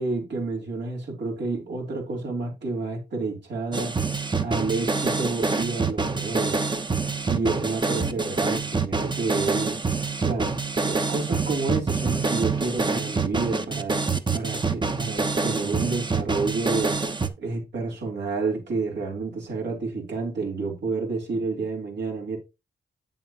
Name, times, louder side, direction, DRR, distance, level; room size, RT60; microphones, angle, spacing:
voice 1, 0.0-3.9 4.4-6.6 7.2-9.8 10.2-10.5 10.8-14.0 14.3-16.9 17.4-22.4, right 3 dB, 75° right, 3.5 m, -29 dB
sound 1, 3.7-17.3, right 4 dB, 25° right, 1.0 m, -26 dB
8.7 x 7.6 x 3.0 m
cardioid pair, 65°, 18 cm